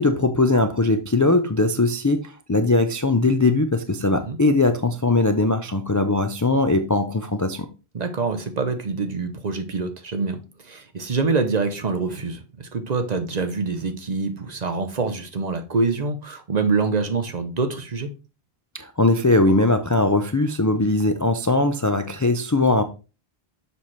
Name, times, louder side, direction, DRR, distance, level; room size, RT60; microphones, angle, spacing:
voice 1, 0.0-7.7 18.7-22.8, left 2 dB, 25° left, 0.4 m, -20 dB
voice 2, 7.9-18.1, right 4 dB, 45° right, 0.8 m, -25 dB
7.0 x 5.7 x 3.1 m
omnidirectional pair, 1.0 m